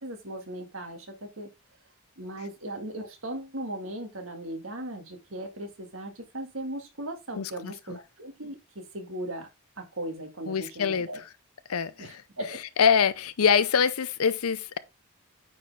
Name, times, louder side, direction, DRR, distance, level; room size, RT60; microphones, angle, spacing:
voice 1, 0.0-1.5 2.2-9.5 9.8-11.2 12.0-12.6, right 1 dB, 60° right, 1.7 m, -38 dB
voice 2, 7.4-8.0 10.5-11.1 11.7-12.2 12.8-14.8, left 6 dB, 75° left, 0.6 m, -24 dB
9.2 x 4.3 x 3.4 m
head